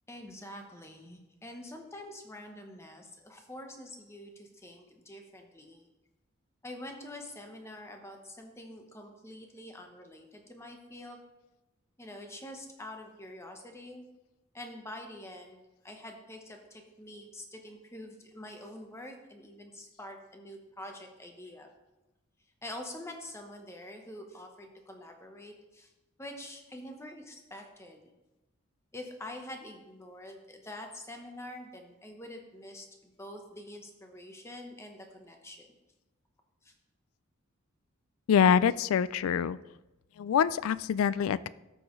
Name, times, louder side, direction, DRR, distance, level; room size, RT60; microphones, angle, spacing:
voice 1, 0.1-5.8 6.6-11.2 12.0-14.0 14.5-21.7 22.6-25.9 26.2-28.1 28.9-35.7 36.6-36.7, left 1 dB, 15° left, 3 dB, 1.0 m, -46 dB
voice 2, 38.3-39.6 40.2-41.5, left 7 dB, 80° left, 18 dB, 0.3 m, -25 dB
13.5 x 6.3 x 3.1 m, 1.0 s
head